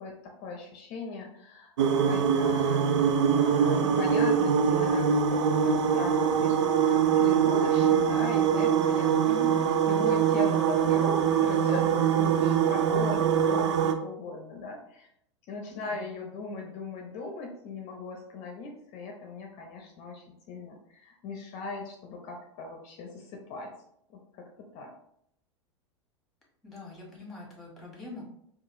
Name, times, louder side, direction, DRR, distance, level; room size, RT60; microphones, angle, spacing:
voice 1, 0.0-1.7 2.0-9.5 9.9-15.1 15.5-23.7 24.1-24.9, left 3 dB, 45° left, 1 dB, 0.7 m, -39 dB
sound 1, 1.8-13.9, right 7 dB, 70° right, 0.4 m, -23 dB
voice 2, 9.3-9.9 15.7-16.1 26.6-28.2, left 2 dB, ahead, -3 dB, 1.5 m, -43 dB
4.8 x 2.4 x 2.6 m, 0.73 s
hypercardioid pair, 90°, 16 cm